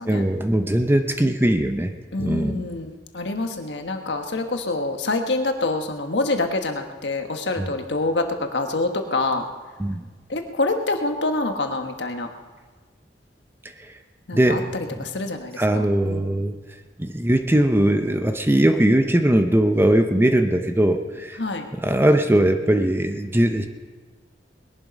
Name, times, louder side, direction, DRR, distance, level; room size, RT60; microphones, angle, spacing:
voice 1, 0.1-1.9 2.2-2.6 7.6-7.7 9.8-10.0 14.3-15.1 15.6-16.6 17.0-21.4 21.7-23.7, right 1 dB, 15° right, 7 dB, 0.7 m, -20 dB
voice 2, 2.1-9.4 10.3-12.3 14.3-16.3 21.4-21.7, left 2 dB, 85° left, 5 dB, 1.4 m, -26 dB
20.5 x 11.0 x 5.3 m, 1.4 s
head